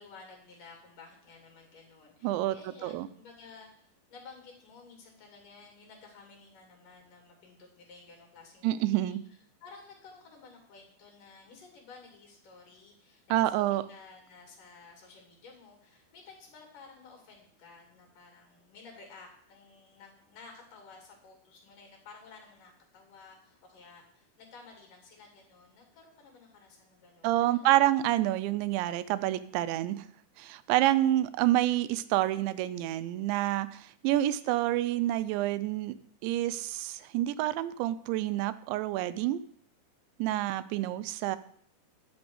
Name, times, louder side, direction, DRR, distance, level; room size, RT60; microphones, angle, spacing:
voice 1, 0.0-9.2 9.6-27.8 30.7-31.1 34.3-34.7 40.6-41.0, left 4 dB, 50° left, 1 dB, 3.9 m, -53 dB
voice 2, 2.2-2.6 2.8-3.1 8.6-9.2 13.3-13.8 27.2-30.1 30.4-35.9 36.2-39.4 40.2-41.4, right 14 dB, 85° right, 14 dB, 2.9 m, -28 dB
11.5 x 6.1 x 7.9 m, 0.65 s
omnidirectional pair, 5.1 m